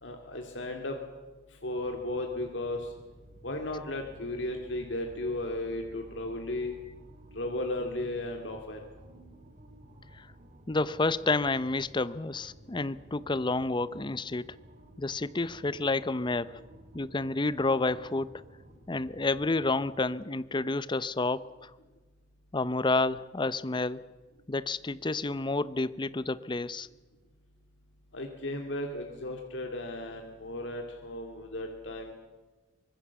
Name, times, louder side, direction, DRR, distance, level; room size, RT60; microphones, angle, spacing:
voice 1, 0.0-1.0 1.6-2.9 3.4-6.7 7.3-8.9 28.1-32.1, left 1 dB, 75° left, 3 dB, 2.2 m, -35 dB
sound 1, 1.7-20.1, right 1 dB, 40° right, 2.4 m, -55 dB
voice 2, 10.7-14.5 15.0-16.6 16.9-18.4 18.9-21.7 22.5-24.0 24.5-26.9, left 3 dB, 25° left, 17 dB, 0.6 m, -30 dB
24.0 x 20.5 x 7.1 m, 1.3 s
head